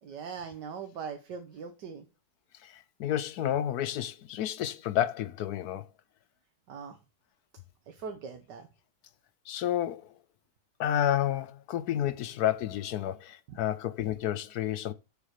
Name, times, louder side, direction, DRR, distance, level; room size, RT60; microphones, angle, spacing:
voice 1, 0.0-2.0 6.7-7.0 7.9-8.7 13.5-13.6, right 6 dB, 85° right, 1.7 m, -41 dB
voice 2, 2.6-5.8 9.5-10.1 10.8-14.9, left 11 dB, 70° left, 1.1 m, -30 dB
7.0 x 7.0 x 6.5 m
omnidirectional pair, 1.8 m